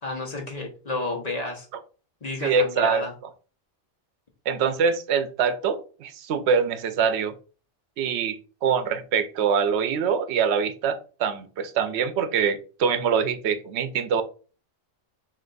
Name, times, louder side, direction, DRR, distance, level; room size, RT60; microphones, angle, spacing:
voice 1, 0.0-1.7 2.2-3.1, left 2 dB, 40° left, 1.0 m, -31 dB
voice 2, 2.4-3.1 4.5-7.3 8.0-14.2, right 6 dB, 75° right, 0.8 m, -24 dB
3.3 x 2.8 x 3.8 m
omnidirectional pair, 1.2 m